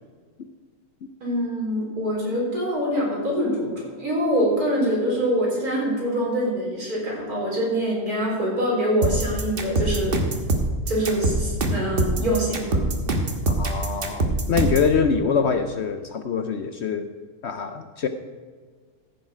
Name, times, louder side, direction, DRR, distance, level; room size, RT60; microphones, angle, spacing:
voice 1, 1.2-10.2 10.9-12.9, equal, 80° right, -4 dB, 4.5 m, -24 dB
sound 1, 9.0-14.9, right 2 dB, 40° right, 1.3 m, -23 dB
voice 2, 13.5-17.1 17.4-18.1, left 6 dB, 60° left, 8 dB, 0.8 m, -24 dB
14.5 x 7.3 x 5.0 m, 1.5 s
omnidirectional pair, 1.6 m